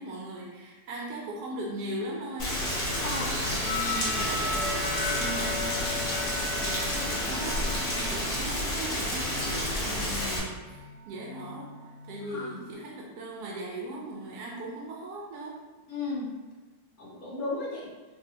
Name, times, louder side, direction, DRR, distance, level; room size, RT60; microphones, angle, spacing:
voice 1, 0.0-2.7 3.1-15.6, right 1 dB, 75° right, -2 dB, 1.1 m, -39 dB
Rain, 2.4-10.4, left 1 dB, 45° left, 1.1 m, -30 dB
sound 1, 2.5-12.5, left 3 dB, 90° left, 1.3 m, -37 dB
voice 2, 3.0-3.3 12.2-12.6 15.9-16.3 17.0-17.9, left 3 dB, 65° left, -5 dB, 1.2 m, -35 dB
4.6 x 2.5 x 2.7 m, 1.2 s
omnidirectional pair, 1.8 m